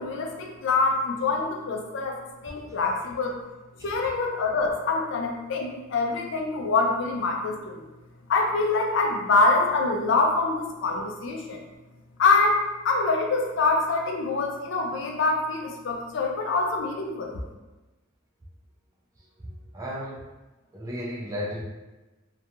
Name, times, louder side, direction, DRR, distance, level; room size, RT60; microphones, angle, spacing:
voice 1, 0.0-2.2 2.4-3.4 3.8-7.8 8.3-11.6 12.2-17.4, left 3 dB, 60° left, 2 dB, 0.4 m, -25 dB
voice 2, 19.7-20.2 20.7-21.6, equal, 15° right, -4 dB, 0.3 m, -34 dB
2.3 x 2.3 x 2.8 m, 1.1 s
head